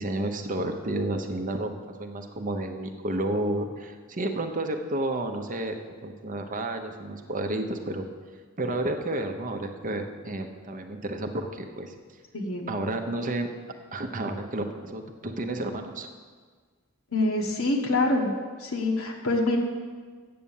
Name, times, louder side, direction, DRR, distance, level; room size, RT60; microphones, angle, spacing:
voice 1, 0.0-5.8 6.0-8.0 8.6-11.9 12.7-13.5 13.9-16.1, right 1 dB, 40° right, 5 dB, 0.8 m, -31 dB
voice 2, 12.3-12.7 17.1-18.3 18.6-19.6, left 2 dB, 70° left, 0 dB, 1.3 m, -25 dB
8.6 x 7.1 x 7.2 m, 1.5 s
head